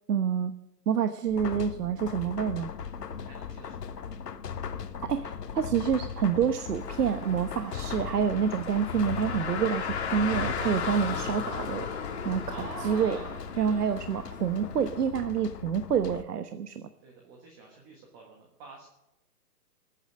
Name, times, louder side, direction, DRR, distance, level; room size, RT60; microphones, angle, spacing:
voice 1, 0.1-0.5 0.9-2.7 5.1-11.9 12.2-13.2 13.6-16.9, right 7 dB, 75° right, 9 dB, 1.2 m, -28 dB
sound 1, 1.3-16.2, left 6 dB, 85° left, 1.6 m, -38 dB
voice 2, 3.1-4.1 12.5-13.8 17.0-18.9, right 3 dB, 15° right, 0 dB, 1.4 m, -46 dB
Car, 6.5-15.1, left 6 dB, 45° left, 2.5 m, -37 dB
20.0 x 9.2 x 7.6 m, 0.89 s
hypercardioid pair, 175°, 47 cm